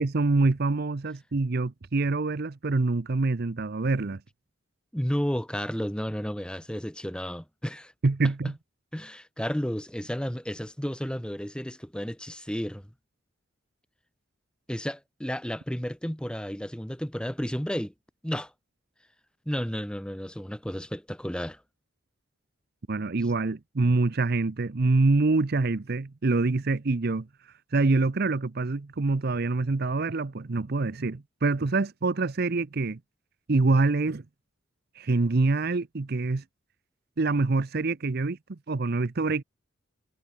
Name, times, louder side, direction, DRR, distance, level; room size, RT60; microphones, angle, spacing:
voice 1, 0.0-4.2 8.0-8.5 22.9-27.3 27.7-33.0 33.5-34.2 35.0-36.4 37.2-39.4, right 3 dB, 50° right, 0.7 m, -25 dB
voice 2, 4.9-7.9 8.9-12.9 14.7-17.9 18.2-18.5 19.4-21.6, equal, 5° left, 1.3 m, -32 dB
head